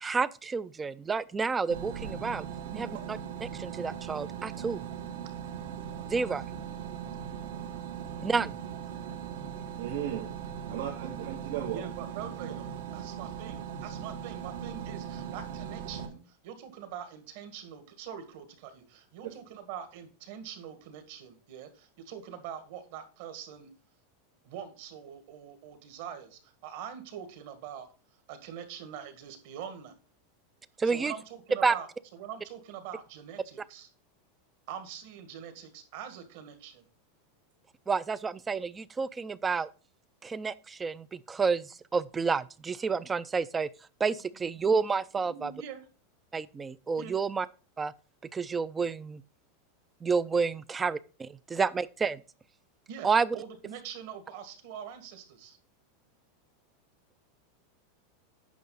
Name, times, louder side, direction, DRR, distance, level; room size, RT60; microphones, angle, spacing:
voice 1, 0.0-2.5 2.8-2.9 3.4-4.8 6.1-6.4 8.2-8.5 30.8-31.1 31.6-31.7 37.9-39.7 40.2-43.7 44.0-45.5 46.3-47.5 47.8-47.9 48.3-49.2 50.0-52.2 53.0-53.4, right 5 dB, 10° right, 0.3 m, -29 dB
sound 1, 1.7-16.1, right 8 dB, 75° right, 1.6 m, -39 dB
voice 2, 9.6-10.3 10.7-11.8 19.2-19.3, right 10 dB, 90° right, 2.5 m, -36 dB
voice 3, 11.7-23.7 24.4-27.9 28.3-29.9 30.8-31.9 32.1-33.9 34.7-36.9 44.7-44.9 45.2-45.8 47.0-47.1 52.9-55.6, right 8 dB, 50° right, 1.8 m, -44 dB
9.4 x 6.2 x 3.9 m
supercardioid pair, 175°, 0 cm